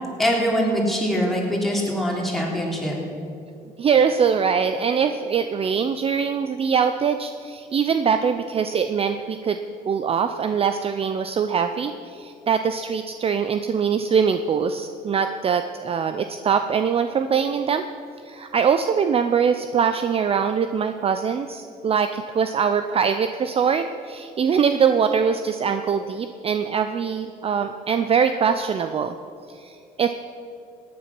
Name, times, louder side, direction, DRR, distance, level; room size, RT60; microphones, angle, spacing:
voice 1, 0.2-2.9, equal, ahead, -3 dB, 3.4 m, -23 dB
voice 2, 3.8-9.6 9.8-17.8 18.2-29.2 29.5-30.1, right 6 dB, 35° right, 8 dB, 0.5 m, -22 dB
17.5 x 9.5 x 6.0 m, 2.5 s
cardioid pair, 110°, 17 cm